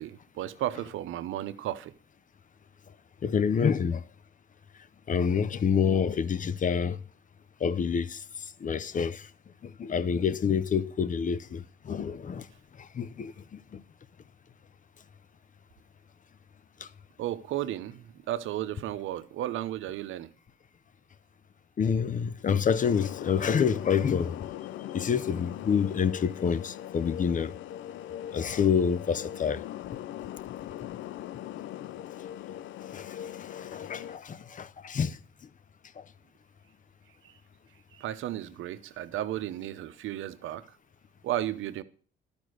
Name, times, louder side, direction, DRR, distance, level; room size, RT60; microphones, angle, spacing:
voice 1, 0.0-1.9 17.2-20.3 37.2-37.3 37.9-40.6 41.2-41.8, right 13 dB, 80° right, 0.8 m, -34 dB
voice 2, 3.2-4.0 5.1-7.0 7.6-8.2 8.6-9.3 9.6-12.5 12.8-13.8 21.8-24.4 24.9-27.5 28.3-29.6 32.9-35.2 36.0-36.1, left 7 dB, 40° left, 0.7 m, -28 dB
sound 1, 22.8-34.2, left 12 dB, 75° left, 0.4 m, -40 dB
12.0 x 5.2 x 6.3 m
cardioid pair, 90°, 20 cm